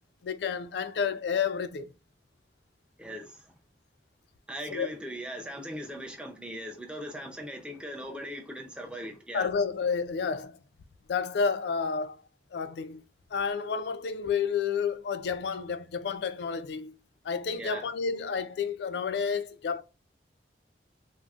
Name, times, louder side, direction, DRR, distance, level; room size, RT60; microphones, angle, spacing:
voice 1, 0.2-1.9 4.7-4.9 9.3-10.6 11.1-12.2 12.5-13.0 13.3-17.0 17.2-19.8, left 6 dB, 70° left, 0.3 m, -30 dB
voice 2, 3.0-3.5 4.5-9.5 17.6-17.9, equal, 5° right, 0.5 m, -39 dB
3.7 x 2.0 x 2.3 m
head